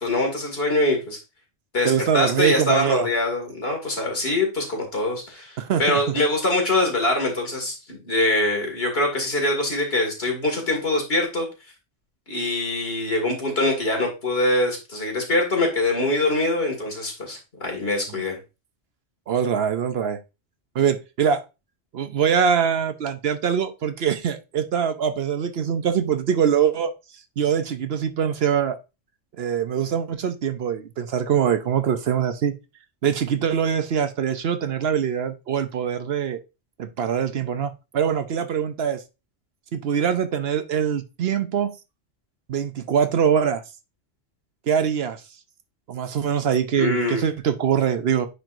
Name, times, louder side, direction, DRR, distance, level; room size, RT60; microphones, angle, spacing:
voice 1, 0.0-1.2 1.7-11.5 12.3-18.4 46.8-47.2, left 2 dB, 55° left, 2.4 m, -23 dB
voice 2, 1.8-3.1 5.6-6.0 18.1-18.2 19.3-20.2 20.7-21.4 21.9-26.9 27.4-28.8 29.4-32.5 33.0-36.4 36.8-39.0 39.7-41.7 42.5-43.6 44.7-45.2 45.9-48.3, right 8 dB, 60° right, 0.8 m, -23 dB
9.8 x 4.5 x 2.5 m
omnidirectional pair, 1.2 m